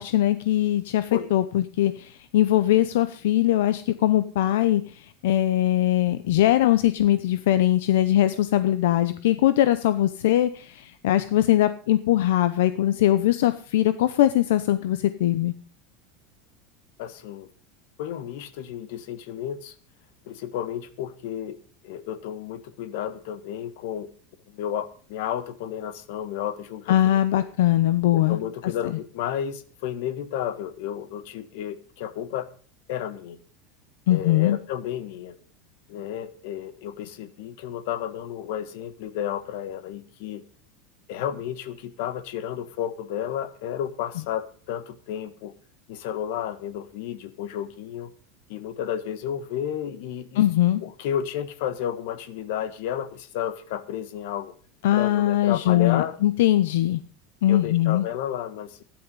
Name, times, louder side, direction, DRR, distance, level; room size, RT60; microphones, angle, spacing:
voice 1, 0.0-15.5 26.9-28.4 34.1-34.6 50.4-50.8 54.8-57.0 57.4-58.0, left 13 dB, 85° left, 12 dB, 0.7 m, -21 dB
voice 2, 17.0-17.5 18.0-19.7 20.2-21.6 21.8-24.1 24.5-27.4 28.1-32.5 32.9-33.4 34.1-35.3 35.9-40.4 41.1-45.5 45.9-48.1 48.5-50.4 50.8-54.5 54.9-56.1 57.5-58.8, left 10 dB, 65° left, 13 dB, 1.4 m, -32 dB
13.0 x 11.0 x 5.4 m, 0.42 s
supercardioid pair, 165°, 0 cm